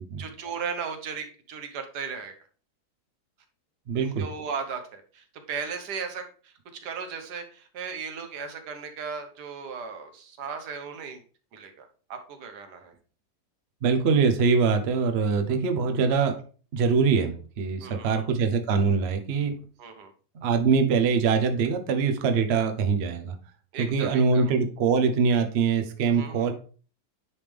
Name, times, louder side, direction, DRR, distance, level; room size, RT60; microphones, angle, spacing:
voice 1, 0.2-2.3 4.0-6.5 6.8-11.2 11.5-12.9 17.8-18.3 19.8-20.1 23.7-24.5 26.1-26.5, right 6 dB, 80° right, 6 dB, 1.6 m, -36 dB
voice 2, 3.9-4.2 13.8-16.3 16.7-19.5 20.3-23.3 23.8-26.5, right 5 dB, 50° right, 6 dB, 0.8 m, -23 dB
9.6 x 3.6 x 3.3 m, 0.39 s
omnidirectional pair, 1.7 m